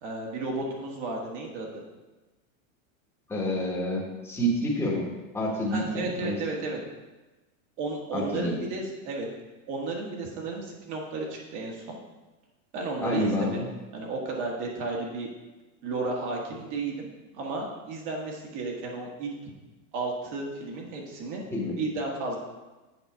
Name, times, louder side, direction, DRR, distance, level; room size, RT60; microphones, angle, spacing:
voice 1, 0.0-1.7 5.7-6.8 7.8-9.3 9.7-12.0 12.7-13.6 13.9-15.3 15.8-17.1 17.3-19.3 19.9-21.4 21.8-22.4, right 3 dB, 55° right, -1 dB, 1.7 m, -33 dB
voice 2, 3.3-6.4 8.1-8.5 13.0-13.7 21.5-21.8, equal, 5° left, -3 dB, 1.2 m, -28 dB
7.8 x 4.0 x 5.6 m, 1.2 s
supercardioid pair, 160°, 41 cm